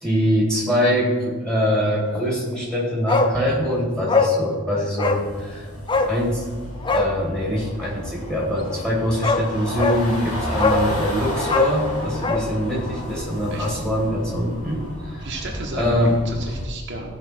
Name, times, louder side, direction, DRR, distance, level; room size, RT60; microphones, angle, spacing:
voice 1, 0.0-5.7 6.1-6.4 6.8-15.3 15.8-16.1, equal, 5° left, -5 dB, 2.6 m, -23 dB
Bark, 3.1-3.4 3.6-3.7 4.1-4.4 5.0-5.2 5.9-6.1 6.8-7.1 8.7-8.8 9.2-9.4 9.8-10.0 10.6-10.9 11.4-12.5 12.7-12.8, left 3 dB, 20° left, 0.5 m, -21 dB
sound 1, 5.0-16.6, equal, 70° left, 2.7 m, -32 dB
voice 2, 15.2-17.2, right 2 dB, 50° right, -1 dB, 1.3 m, -33 dB
14.5 x 5.6 x 4.5 m, 1.4 s
head